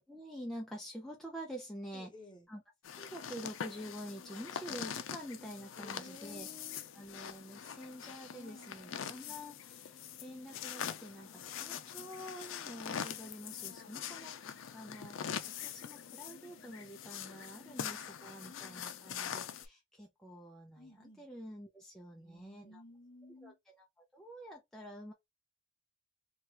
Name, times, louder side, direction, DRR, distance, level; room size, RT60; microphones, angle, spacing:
voice 1, 0.0-2.1 2.5-2.6 2.9-6.5 6.9-15.3 15.6-22.8 23.4-23.5 24.1-25.1, equal, ahead, 0.4 m, -47 dB
voice 2, 1.9-2.5 5.8-6.8 8.2-9.1 11.2-12.5 13.8-14.8 16.3-16.8 17.6-18.1 18.4-19.1 20.8-21.2 22.1-23.6, left 1 dB, 25° left, 0.9 m, -57 dB
sound 1, 2.8-19.7, left 8 dB, 80° left, 0.4 m, -43 dB
2.9 x 2.3 x 3.2 m
head